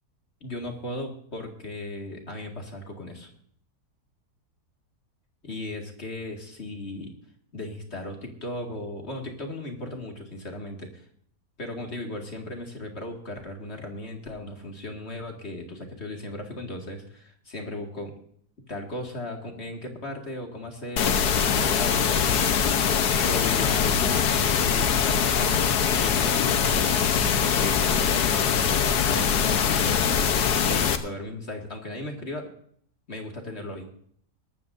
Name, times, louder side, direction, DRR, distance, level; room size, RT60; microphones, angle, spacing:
voice 1, 0.4-3.3 5.4-7.1 7.5-11.0 11.6-18.1 18.7-22.5 23.2-30.3 30.7-32.5 33.1-33.9, left 1 dB, 40° left, 2 dB, 2.3 m, -36 dB
sound 1, 21.0-31.0, left 7 dB, 80° left, 1.5 m, -22 dB
21.5 x 13.0 x 2.6 m, 0.62 s
omnidirectional pair, 1.7 m